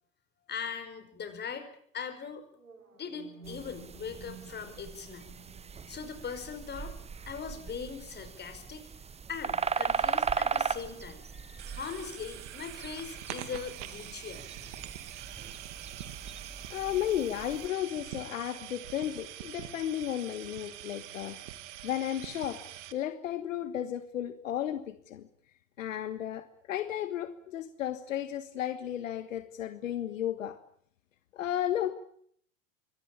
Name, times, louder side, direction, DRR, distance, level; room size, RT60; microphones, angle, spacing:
voice 1, 0.5-1.7 1.9-2.4 2.9-5.3 5.9-7.0 7.3-8.9 9.3-14.5, left 6 dB, 25° left, 9 dB, 5.1 m, -40 dB
sound 1, 2.5-10.6, right 4 dB, 90° right, 3.8 m, -55 dB
sound 2, 3.4-17.7, right 6 dB, 15° right, 1.1 m, -38 dB
sound 3, 11.6-22.9, right 12 dB, 60° right, 2.4 m, -44 dB
voice 2, 16.7-21.4 21.8-22.6 22.9-25.2 25.8-30.6 31.3-31.9, left 11 dB, 70° left, 11 dB, 1.6 m, -34 dB
24.5 x 18.5 x 8.9 m, 0.63 s
hypercardioid pair, 90°, 40 cm